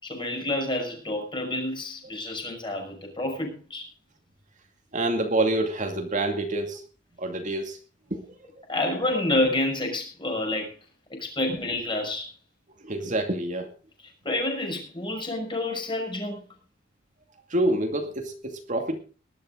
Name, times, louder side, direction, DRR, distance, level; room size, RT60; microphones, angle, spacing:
voice 1, 0.0-3.9 8.7-10.7 11.1-12.3 14.2-16.4, left 2 dB, 25° left, 3 dB, 6.0 m, -28 dB
voice 2, 4.9-6.8 7.2-7.8 8.1-8.2 12.8-13.7 17.5-19.0, right 1 dB, 45° right, 4 dB, 2.3 m, -27 dB
19.5 x 12.0 x 3.9 m, 0.37 s
head